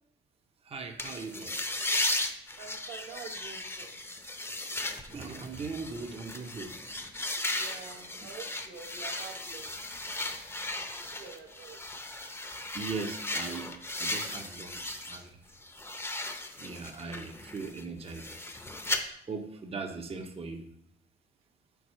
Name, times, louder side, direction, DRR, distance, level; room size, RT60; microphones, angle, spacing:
voice 1, 0.6-1.6 5.1-6.7 12.7-15.4 16.1-16.3 16.6-18.3 19.3-20.6, right 4 dB, 30° right, 5 dB, 0.7 m, -39 dB
sound 1, 1.0-15.2 15.5-19.0, left 2 dB, 10° left, 0.6 m, -36 dB
voice 2, 2.6-4.0 7.5-10.4 10.9-11.8, right 6 dB, 85° right, 1 dB, 1.0 m, -47 dB
4.7 x 3.9 x 5.3 m, 0.74 s
cardioid pair, 90°, 20 cm